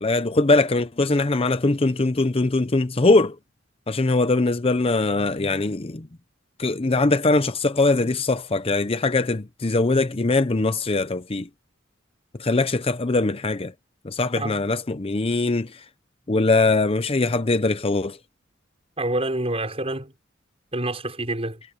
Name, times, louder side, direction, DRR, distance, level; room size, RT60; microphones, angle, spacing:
voice 1, 0.0-3.4 3.9-6.1 6.6-11.5 12.4-13.7 14.0-15.8 16.3-18.2, left 2 dB, 30° left, 0.7 m, -21 dB
voice 2, 19.0-20.1 20.7-21.6, right 1 dB, 30° right, 6.0 m, -27 dB
head